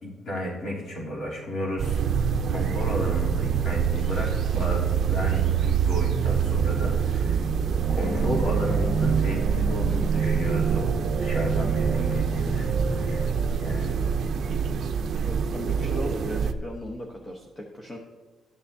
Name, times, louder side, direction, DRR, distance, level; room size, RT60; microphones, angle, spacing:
voice 1, 0.0-7.5 7.9-10.9 11.2-13.3 13.6-14.0, equal, 55° left, -5 dB, 3.3 m, -33 dB
sound 1, 1.8-16.5, right 7 dB, 55° right, 0.5 m, -25 dB
sound 2, 7.7-13.3, right 5 dB, 30° right, 1.9 m, -29 dB
voice 2, 15.2-18.0, left 1 dB, 30° left, 0 dB, 1.1 m, -37 dB
14.0 x 10.0 x 2.8 m, 1.4 s
cardioid pair, 140°, 0 cm